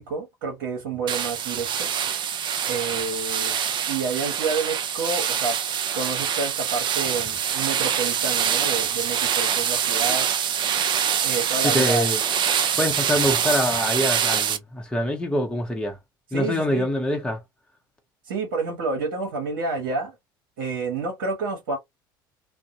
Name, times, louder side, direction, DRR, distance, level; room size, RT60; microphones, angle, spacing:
voice 1, 0.0-1.9 2.7-3.5 3.9-5.6 5.9-10.3 11.2-12.1 13.2-13.3 16.3-16.9 18.3-20.1 20.6-21.8, right 4 dB, 75° right, 0.9 m, -29 dB
sound 1, 1.1-14.6, right 8 dB, 45° right, 0.6 m, -25 dB
voice 2, 11.6-12.2 12.8-16.0 16.3-17.4, left 1 dB, 10° left, 0.7 m, -24 dB
2.6 x 2.1 x 2.6 m
hypercardioid pair, 70°, 11 cm